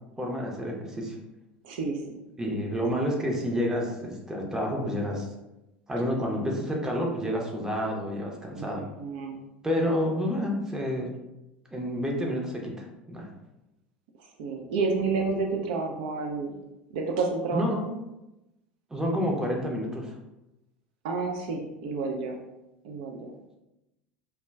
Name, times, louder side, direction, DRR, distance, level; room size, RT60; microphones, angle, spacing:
voice 1, 0.2-1.2 2.4-5.3 5.9-8.8 9.6-11.1 11.7-13.3 17.5-17.9 18.9-20.1, equal, 10° right, -1 dB, 0.6 m, -29 dB
voice 2, 1.6-2.2 8.5-9.4 14.4-16.6 16.9-17.7 21.0-22.4 22.8-23.3, right 4 dB, 60° right, 1 dB, 0.3 m, -30 dB
2.2 x 2.1 x 3.3 m, 0.95 s
figure-of-eight pair, 75°, 5 cm